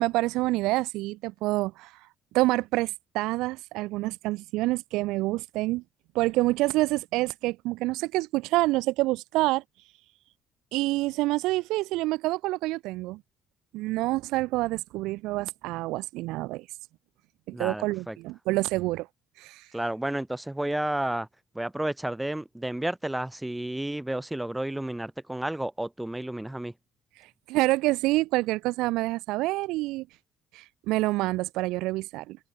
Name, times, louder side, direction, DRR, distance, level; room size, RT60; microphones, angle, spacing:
voice 1, 0.0-2.1 2.3-5.8 6.1-10.0 10.7-13.2 13.7-16.8 17.5-19.1 19.4-19.8 27.1-30.1 30.5-32.4, right 19 dB, 90° right, 4.1 m, -27 dB
voice 2, 17.5-18.2 19.7-21.3 21.5-26.7, right 1 dB, 5° right, 5.7 m, -31 dB
cardioid pair, 165°, 0 cm